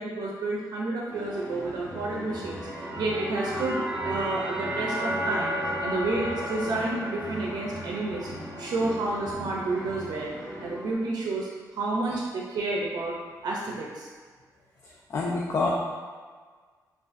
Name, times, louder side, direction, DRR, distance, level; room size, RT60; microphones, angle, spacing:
voice 1, 0.0-8.3 8.6-10.3 10.6-13.2 13.4-14.1, right 2 dB, 75° right, -3 dB, 0.5 m, -30 dB
sound 1, 1.1-10.9, equal, 15° left, 1.1 m, -39 dB
sound 2, 2.4-9.3, right 1 dB, 10° right, 0.7 m, -34 dB
voice 2, 14.8-15.7, left 3 dB, 45° left, -3 dB, 0.4 m, -28 dB
4.9 x 2.4 x 2.5 m, 1.5 s
wide cardioid pair, 155°, 7 cm